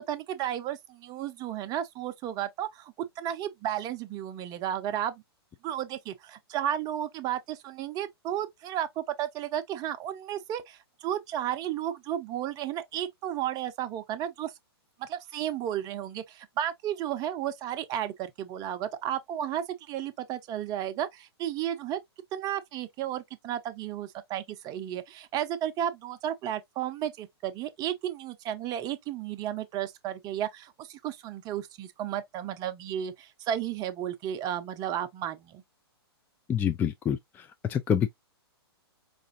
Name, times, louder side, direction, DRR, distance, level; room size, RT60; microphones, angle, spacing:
voice 1, 0.0-5.2 5.6-14.5 15.0-22.0 22.3-35.6, right 11 dB, 30° right, 0.7 m, -33 dB
voice 2, 36.5-38.1, left 8 dB, 15° left, 0.3 m, -27 dB
4.8 x 2.5 x 2.5 m
hypercardioid pair, 120°, 14 cm